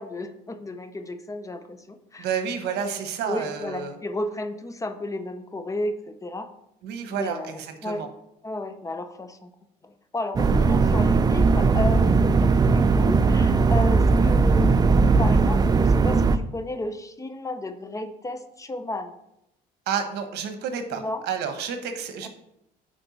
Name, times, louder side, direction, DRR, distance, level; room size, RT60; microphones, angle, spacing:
voice 1, 0.0-2.3 2.7-6.5 7.1-8.0 8.4-9.5 9.8-19.1 20.9-21.2 22.2-22.3, left 2 dB, 20° left, 9 dB, 0.7 m, -33 dB
voice 2, 2.2-3.9 6.8-8.1 19.9-22.3, right 7 dB, 80° right, 7 dB, 1.1 m, -30 dB
sound 1, 10.4-16.4, right 4 dB, 25° right, 0.4 m, -19 dB
8.8 x 4.5 x 4.1 m, 0.82 s
cardioid pair, 110°, 17 cm